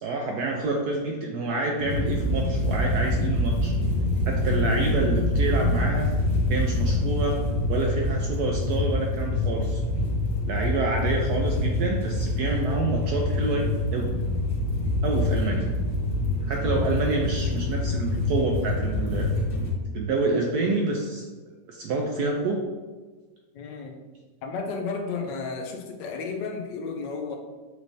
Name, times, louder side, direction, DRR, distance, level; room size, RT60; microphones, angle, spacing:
voice 1, 0.0-3.7 4.3-6.1 6.5-7.4 7.7-9.8 10.5-14.1 15.0-15.7 16.4-19.3 19.9-21.2 21.7-22.6, right 3 dB, 75° right, 0 dB, 0.9 m, -28 dB
sound 1, 1.8-19.7, left 1 dB, 35° left, 0.5 m, -25 dB
voice 2, 23.5-23.9 24.4-27.4, left 4 dB, 75° left, 3 dB, 1.1 m, -32 dB
6.2 x 3.2 x 2.6 m, 1.3 s
omnidirectional pair, 2.1 m